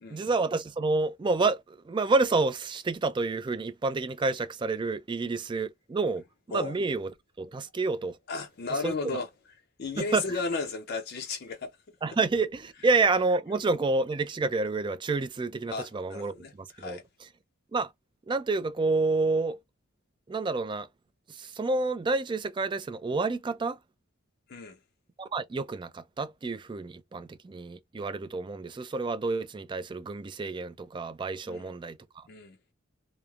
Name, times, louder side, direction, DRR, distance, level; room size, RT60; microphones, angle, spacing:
voice 1, 0.1-7.1 7.4-8.2 8.8-9.2 10.0-10.2 12.0-16.5 16.8-17.0 17.7-17.9 18.3-19.6 20.3-20.9 21.3-23.8 25.2-32.3, right 3 dB, 25° right, 0.3 m, -29 dB
voice 2, 8.3-9.3 9.8-11.8 15.7-17.0 24.5-24.8 31.4-31.7 32.3-32.6, left 3 dB, 50° left, 0.5 m, -34 dB
3.0 x 2.1 x 2.3 m
head